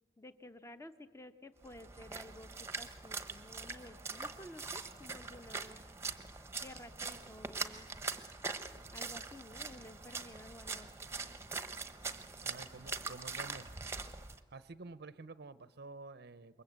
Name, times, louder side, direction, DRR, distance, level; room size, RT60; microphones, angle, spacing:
voice 1, 0.2-5.8 6.6-7.9 8.9-10.9, left 1 dB, 15° left, 10 dB, 1.0 m, -53 dB
Splash splatter, 1.6-14.4, right 4 dB, 15° right, 1.0 m, -43 dB
voice 2, 12.4-13.7 14.0-16.6, right 3 dB, 55° right, 15 dB, 0.7 m, -50 dB
28.0 x 23.0 x 8.0 m, 1.4 s
head